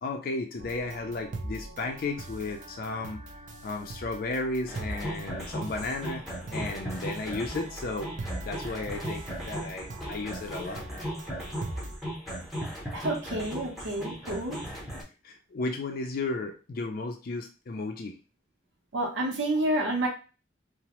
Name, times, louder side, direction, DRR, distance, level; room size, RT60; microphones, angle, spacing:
voice 1, 0.0-3.2 3.6-6.2 6.5-8.1 8.4-10.8 14.1-14.2 14.7-14.8 15.2-18.2, left 3 dB, 50° left, 3 dB, 0.4 m, -34 dB
sound 1, 0.6-12.0, right 2 dB, 45° right, 0.4 m, -42 dB
sound 2, 4.7-15.0, equal, ahead, 0.7 m, -37 dB
voice 2, 12.9-14.6 18.9-20.1, right 1 dB, 85° right, 1 dB, 0.7 m, -29 dB
2.9 x 2.0 x 2.9 m, 0.33 s
head